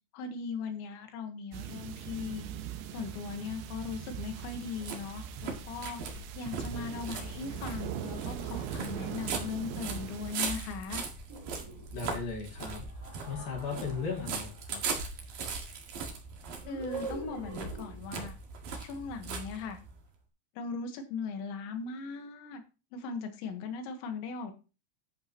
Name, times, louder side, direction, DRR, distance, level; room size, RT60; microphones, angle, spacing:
voice 1, 0.1-2.5 2.9-11.0 16.7-18.4 18.8-19.8 20.6-22.6 22.9-24.5, left 5 dB, 80° left, 6 dB, 3.8 m, -39 dB
sound 1, 1.5-10.4, right 10 dB, 75° right, 2.8 m, -41 dB
sound 2, 3.6-20.0, right 5 dB, 55° right, 3.2 m, -40 dB
sound 3, 11.3-12.1 12.9-14.7 16.6-18.2, right 2 dB, 25° right, 3.4 m, -44 dB
voice 2, 11.9-12.8 13.3-14.8, left 5 dB, 60° left, 0 dB, 3.3 m, -36 dB
11.0 x 8.6 x 3.0 m, 0.32 s
omnidirectional pair, 5.2 m